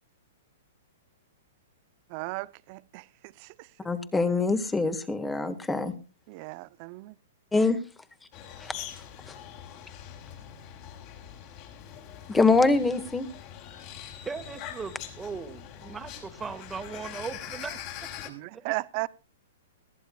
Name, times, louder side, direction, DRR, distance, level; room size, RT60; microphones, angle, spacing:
voice 1, 2.1-3.7 6.3-7.2 18.3-19.1, right 24 dB, 45° right, 0.8 m, -36 dB
voice 2, 3.8-5.9 7.5-7.8 8.6-9.3 12.3-13.3, left 3 dB, 10° left, 1.9 m, -25 dB
sound 1, 8.3-18.3, left 10 dB, 45° left, 5.7 m, -43 dB
voice 3, 14.2-18.0 18.5-18.6, right 5 dB, 15° right, 2.0 m, -38 dB
20.5 x 14.5 x 2.5 m
hypercardioid pair, 130°, 0 cm